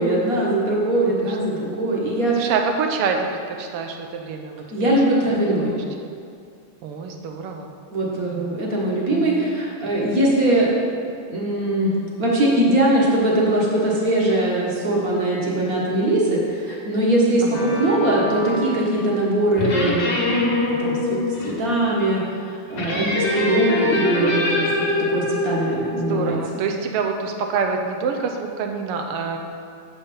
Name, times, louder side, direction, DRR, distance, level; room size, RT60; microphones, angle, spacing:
voice 1, 0.0-2.5 4.7-5.7 7.9-10.7 11.1-11.9 12.2-26.4, right 1 dB, 45° right, -4 dB, 1.6 m, -21 dB
voice 2, 1.2-1.6 2.4-4.6 5.4-5.5 5.8-5.9 6.8-7.7 8.2-8.6 17.4-17.8 23.5-24.0 26.0-29.4, right 5 dB, 90° right, 4 dB, 1.7 m, -27 dB
sound 1, 17.5-18.9 19.6-21.5 22.7-26.2, left 2 dB, 55° left, 1.9 m, -24 dB
7.1 x 5.4 x 5.4 m, 2.4 s
omnidirectional pair, 2.4 m